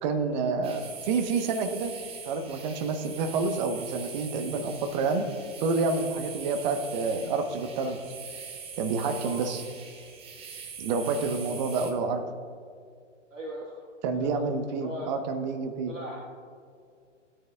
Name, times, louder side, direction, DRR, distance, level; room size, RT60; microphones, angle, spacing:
voice 1, 0.0-1.9 2.2-5.3 5.6-8.0 8.8-9.6 10.8-12.2 14.0-15.9, right 4 dB, 35° right, 7 dB, 1.1 m, -28 dB
sound 1, 0.6-11.9, right 6 dB, 15° right, 0.8 m, -42 dB
voice 2, 13.3-13.9 14.2-14.5 14.8-15.1 15.9-16.2, equal, 85° right, -2 dB, 1.7 m, -39 dB
17.0 x 9.3 x 2.4 m, 2.2 s
figure-of-eight pair, 120°, 37 cm